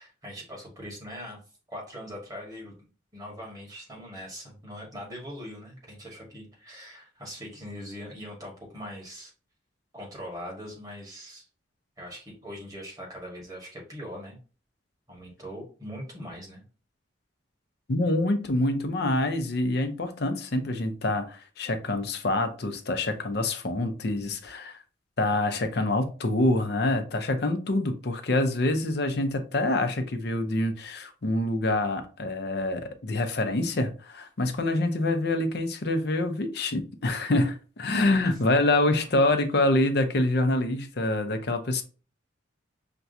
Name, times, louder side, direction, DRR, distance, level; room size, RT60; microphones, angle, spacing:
voice 1, 0.0-1.4 1.7-2.9 3.1-9.3 9.9-11.5 12.0-14.4 15.1-16.6 38.2-38.4, equal, 20° right, 1.4 m, -41 dB
voice 2, 17.9-24.8 25.2-41.8, left 2 dB, 55° left, 0.6 m, -26 dB
5.8 x 2.3 x 2.6 m
head